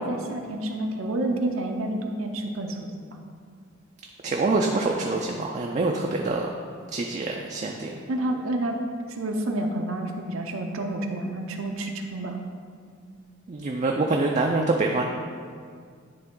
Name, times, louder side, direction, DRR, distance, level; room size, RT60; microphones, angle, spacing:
voice 1, 0.0-2.9 8.1-8.8 9.1-12.4, right 1 dB, 75° right, 3 dB, 0.6 m, -29 dB
voice 2, 4.2-6.5 6.9-7.9 13.5-15.0, right 3 dB, 35° right, 1 dB, 0.4 m, -25 dB
10.0 x 3.4 x 3.7 m, 2.1 s
head